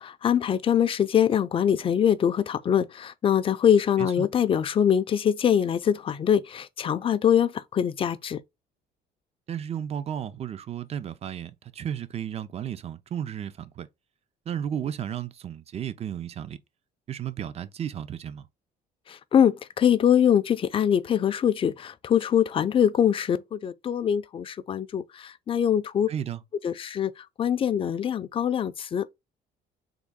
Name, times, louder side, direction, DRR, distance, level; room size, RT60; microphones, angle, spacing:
voice 1, 0.0-8.4 19.1-26.1 26.6-29.1, left 9 dB, 30° left, 0.4 m, -23 dB
voice 2, 9.5-13.9 14.5-16.6 17.1-18.5 26.1-26.4, right 9 dB, 40° right, 0.4 m, -33 dB
3.7 x 2.3 x 3.5 m
cardioid pair, 110°, 17 cm